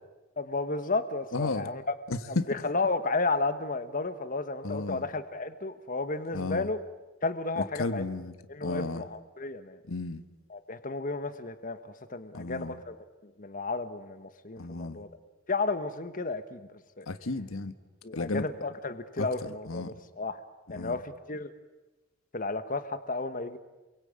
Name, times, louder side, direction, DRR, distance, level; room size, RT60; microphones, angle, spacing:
voice 1, 0.4-1.9 2.3-6.8 7.2-8.0 8.5-9.8 10.5-13.0 13.4-15.1 15.5-17.1 18.0-20.4 20.7-21.5 22.3-23.6, left 3 dB, 40° left, 10 dB, 1.3 m, -33 dB
voice 2, 1.3-1.7 2.1-2.5 4.6-5.0 6.3-6.7 7.6-8.4 8.6-9.0 9.9-10.2 12.3-12.7 14.6-15.0 17.1-17.7 18.1-18.5 19.2-19.3 19.7-19.9 20.7-20.9, left 2 dB, 80° left, 10 dB, 1.4 m, -33 dB
29.0 x 23.0 x 8.8 m, 1.1 s
head